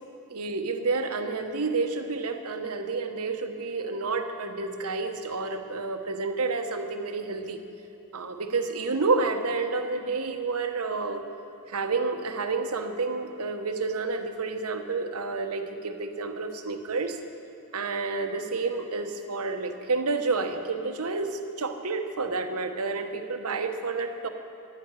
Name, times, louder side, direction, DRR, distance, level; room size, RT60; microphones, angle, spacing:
voice 1, 0.3-7.6 8.1-11.2 11.7-17.2 17.7-24.3, right 3 dB, 85° right, 6 dB, 1.1 m, -29 dB
12.0 x 10.5 x 8.9 m, 2.7 s
head